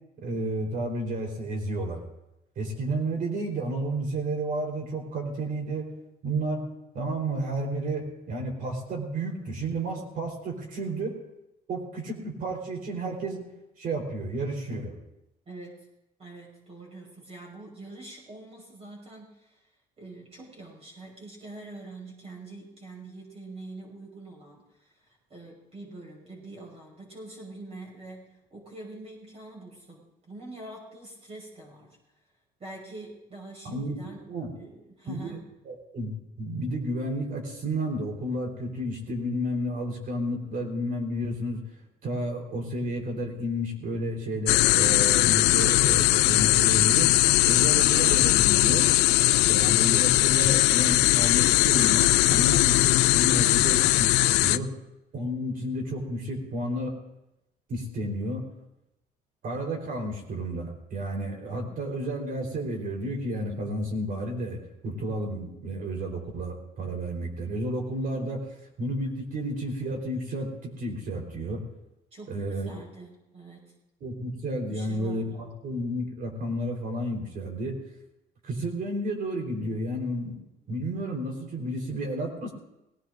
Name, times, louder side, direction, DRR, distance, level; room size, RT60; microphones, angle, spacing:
voice 1, 0.2-2.0 2.6-5.9 6.2-6.6 6.9-11.2 11.7-13.4 13.8-14.9 33.6-34.5 35.1-35.4 35.6-41.6 42.0-47.1 47.4-48.9 49.5-54.7 55.1-57.0 57.7-58.5 59.4-71.6 72.3-72.7 74.0-77.8 78.4-80.4 80.7-82.5, right 1 dB, 55° right, 2 dB, 4.2 m, -31 dB
voice 2, 15.5-15.9 16.2-19.6 20.0-32.0 32.6-34.3 34.6-35.4 61.7-62.0 72.1-73.8 74.7-75.4, right 2 dB, 40° right, -2 dB, 6.1 m, -45 dB
sound 1, 44.5-54.6, left 18 dB, 90° left, 0.4 m, -20 dB
21.0 x 18.0 x 2.6 m, 0.89 s
cardioid pair, 110°, 17 cm